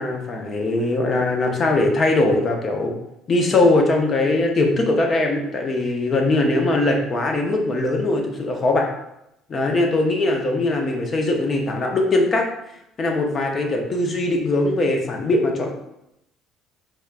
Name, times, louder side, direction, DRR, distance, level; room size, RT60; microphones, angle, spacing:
voice 1, 0.0-2.9 3.3-8.9 9.5-12.4 13.0-15.7, left 2 dB, 40° left, 2 dB, 0.7 m, -21 dB
4.4 x 2.3 x 2.5 m, 0.83 s
supercardioid pair, 75°, 0 cm